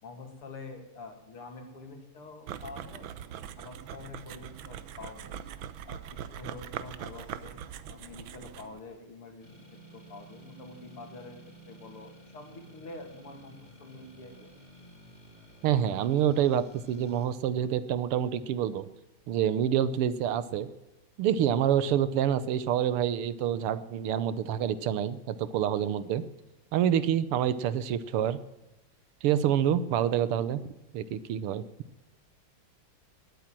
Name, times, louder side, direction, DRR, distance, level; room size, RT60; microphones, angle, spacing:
voice 1, 0.0-3.1 3.6-5.4 5.8-7.6 7.9-9.5 9.9-11.4 11.6-14.5, left 3 dB, 80° left, 4 dB, 3.5 m, -46 dB
sound 1, 2.5-8.8, right 9 dB, 70° right, 1.5 m, -42 dB
sound 2, 9.4-17.3, right 2 dB, 40° left, 5.6 m, -53 dB
voice 2, 15.6-18.9 19.3-20.7 21.2-26.2 26.7-28.4 29.2-30.6 30.9-31.6, right 10 dB, 85° right, 14 dB, 1.8 m, -27 dB
20.0 x 9.2 x 7.6 m, 0.94 s
omnidirectional pair, 2.4 m